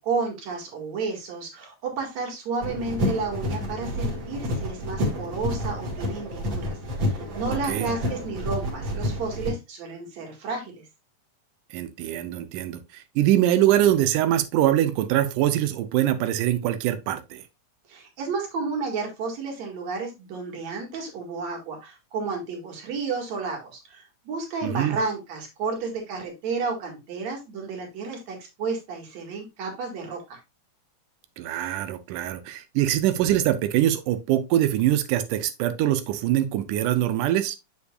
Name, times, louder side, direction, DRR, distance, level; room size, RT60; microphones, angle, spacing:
voice 1, 0.0-10.8 17.9-30.4, right 4 dB, 60° right, 3.0 m, -32 dB
sound 1, 2.6-9.5, left 1 dB, 45° right, 2.2 m, -29 dB
voice 2, 7.5-7.9 11.7-17.4 24.6-25.0 31.4-37.6, right 12 dB, 85° right, 2.2 m, -23 dB
7.1 x 6.7 x 2.3 m
omnidirectional pair, 3.6 m